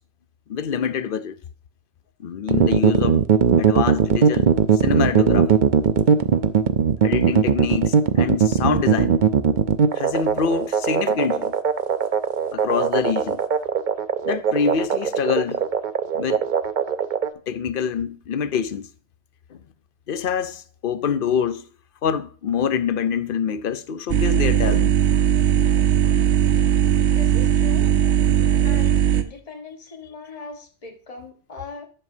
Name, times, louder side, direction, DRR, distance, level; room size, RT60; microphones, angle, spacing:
voice 1, 0.5-1.4 2.2-3.3 3.6-5.6 7.0-9.2 9.9-11.5 12.5-13.4 14.2-15.6 16.1-16.4 17.5-18.9 19.5-19.6 20.1-21.7 22.0-25.0 28.3-28.4, left 7 dB, 55° left, 0.8 m, -25 dB
sound 1, 2.5-17.3, right 7 dB, 50° right, 0.7 m, -19 dB
sound 2, 24.1-29.2, right 10 dB, 80° right, 1.0 m, -18 dB
voice 2, 27.0-27.9 28.6-31.8, left 3 dB, 35° left, 1.4 m, -39 dB
11.0 x 7.0 x 2.7 m
omnidirectional pair, 1.1 m